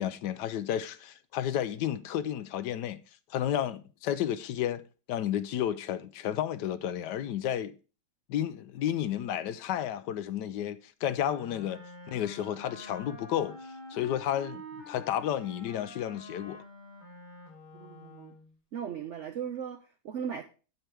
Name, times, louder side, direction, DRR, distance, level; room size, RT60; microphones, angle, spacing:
voice 1, 0.0-3.0 3.3-4.8 5.1-7.7 8.3-11.8 12.1-16.6, left 10 dB, 75° left, 1.2 m, -32 dB
Wind instrument woodwind instrument, 11.2-18.5, left 1 dB, 20° left, 3.3 m, -47 dB
voice 2, 17.7-18.3 18.7-20.4, right 8 dB, 70° right, 0.7 m, -37 dB
8.9 x 7.5 x 3.3 m
omnidirectional pair, 1.9 m